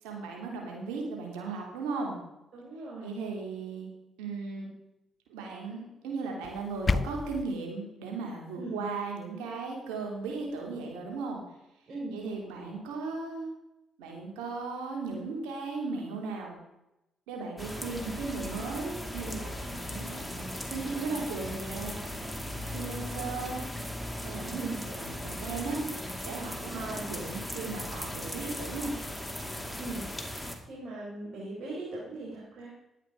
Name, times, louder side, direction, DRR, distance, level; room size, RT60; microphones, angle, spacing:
voice 1, 0.0-2.2 3.0-3.9 4.2-4.7 5.3-11.4 12.1-13.5 14.0-16.6 17.3-22.0 22.7-23.6 24.2-25.8 26.2-28.9, right 4 dB, 90° right, 0 dB, 3.1 m, -36 dB
voice 2, 2.5-3.1 8.6-8.8 11.9-12.2 24.5-24.8 26.7-27.0 29.8-30.1 30.7-32.7, right 2 dB, 55° right, -5 dB, 4.2 m, -39 dB
sound 1, 6.4-7.4, left 4 dB, 40° left, 0.5 m, -30 dB
sound 2, 17.6-30.6, left 1 dB, 5° left, 2.2 m, -38 dB
12.0 x 9.1 x 4.9 m, 0.91 s
supercardioid pair, 55°, 0 cm